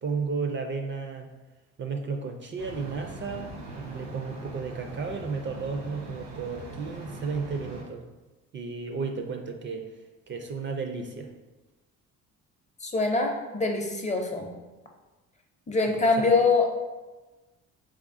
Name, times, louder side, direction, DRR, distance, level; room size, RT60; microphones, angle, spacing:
voice 1, 0.0-1.3 1.8-8.0 8.5-9.9 10.3-11.3 16.2-16.3, right 4 dB, 40° right, 4 dB, 0.4 m, -33 dB
sound 1, 2.6-7.8, right 2 dB, 85° right, 1.1 m, -42 dB
voice 2, 12.8-14.5 15.7-16.8, left 3 dB, 25° left, 2 dB, 0.5 m, -24 dB
3.6 x 3.5 x 2.5 m, 1.2 s
cardioid pair, 90°, 30 cm